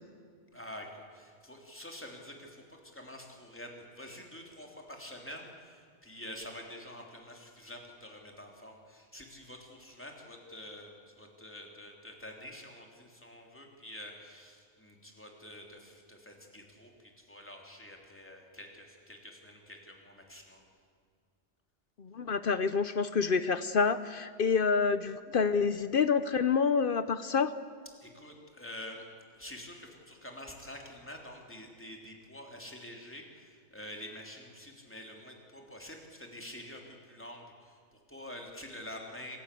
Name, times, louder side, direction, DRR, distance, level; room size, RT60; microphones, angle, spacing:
voice 1, 0.5-20.6 28.0-29.0 29.3-39.4, left 1 dB, 10° left, 1 dB, 3.3 m, -47 dB
voice 2, 22.0-27.5, left 5 dB, 55° left, 13 dB, 0.9 m, -28 dB
26.5 x 16.0 x 8.4 m, 2.2 s
omnidirectional pair, 1.2 m